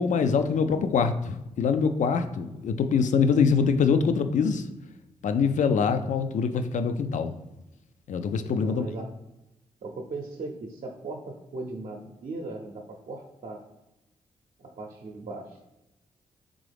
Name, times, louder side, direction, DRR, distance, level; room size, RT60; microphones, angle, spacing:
voice 1, 0.0-4.7 5.2-7.4 8.1-8.9, left 5 dB, 65° left, 9 dB, 0.4 m, -24 dB
voice 2, 8.4-9.1 9.8-13.6 14.6-15.6, right 3 dB, 60° right, 0 dB, 0.6 m, -38 dB
3.7 x 3.7 x 3.4 m, 0.94 s
supercardioid pair, 50°, 14 cm